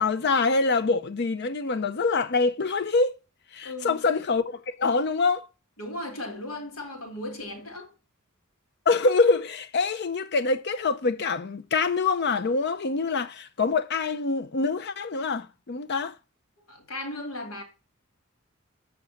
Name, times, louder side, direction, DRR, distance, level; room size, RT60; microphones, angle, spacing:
voice 1, 0.0-3.1 3.5-5.5 8.9-16.1, left 4 dB, 55° left, 0.6 m, -25 dB
voice 2, 3.6-4.0 5.8-7.9 16.7-17.6, left 1 dB, 80° left, 2.6 m, -36 dB
7.1 x 5.8 x 6.4 m
head